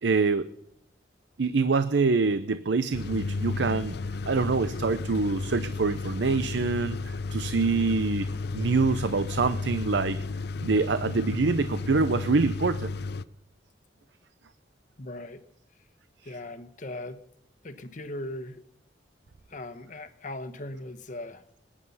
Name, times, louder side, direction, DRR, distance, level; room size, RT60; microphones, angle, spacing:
voice 1, 0.0-0.5 1.4-4.0 4.3-8.3 8.5-10.2 10.6-12.9, right 4 dB, 80° right, 12 dB, 0.6 m, -25 dB
sound 1, 2.9-13.2, left 3 dB, 65° left, 0.6 m, -33 dB
voice 2, 15.0-15.4 16.2-17.2 17.6-18.6 19.5-21.4, left 1 dB, 45° left, 10 dB, 1.2 m, -39 dB
20.5 x 10.0 x 5.5 m, 0.78 s
head